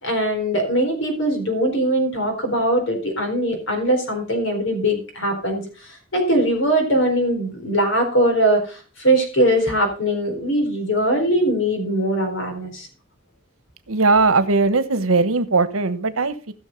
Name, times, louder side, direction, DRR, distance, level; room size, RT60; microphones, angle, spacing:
voice 1, 0.0-5.6 6.1-12.9, right 1 dB, 65° left, 4 dB, 4.3 m, -21 dB
voice 2, 13.9-16.5, right 3 dB, 90° right, 13 dB, 1.1 m, -19 dB
15.0 x 6.4 x 5.2 m, 0.35 s
head